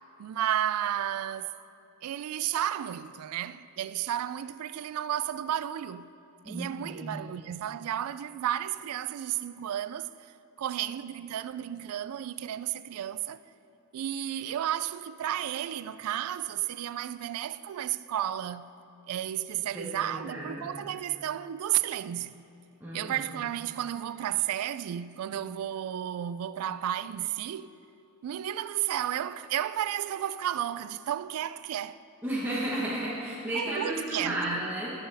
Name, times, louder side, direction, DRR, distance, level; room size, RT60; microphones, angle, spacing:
voice 1, 0.2-1.5 2.0-6.1 6.5-10.1 10.6-13.4 13.9-18.7 19.1-22.4 22.9-27.7 28.2-32.0 33.5-34.7, right 11 dB, 80° right, 0.3 m, -32 dB
voice 2, 6.4-7.2 19.7-20.8 22.8-23.3 32.2-34.9, right 1 dB, 10° right, 1.2 m, -33 dB
19.0 x 6.8 x 3.4 m
head